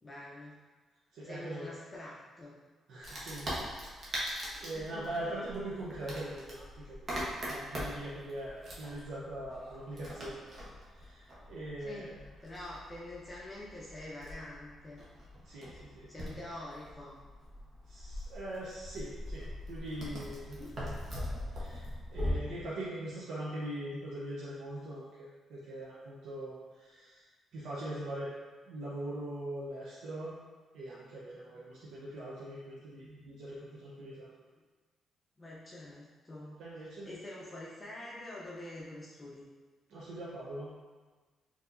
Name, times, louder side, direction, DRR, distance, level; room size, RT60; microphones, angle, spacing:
voice 1, 0.0-0.5 1.2-2.5 4.7-5.1 11.8-12.1 12.4-15.0 16.1-17.2 20.6-20.7 22.3-22.5 31.5-31.8 34.0-34.1 35.4-36.6 37.0-39.5, left 1 dB, 25° left, -6 dB, 0.6 m, -46 dB
voice 2, 1.1-1.7 2.9-3.7 3.9-7.2 7.5-10.4 10.9-12.2 15.4-16.1 17.9-20.9 21.5-27.2 27.5-28.3 28.7-30.4 30.7-34.3 36.6-37.1 39.9-40.7, right 1 dB, 80° right, -7 dB, 0.6 m, -42 dB
Wood, 3.0-22.3, equal, 45° right, 1.0 m, -42 dB
4.4 x 2.8 x 2.5 m, 1.4 s
cardioid pair, 105°, 0 cm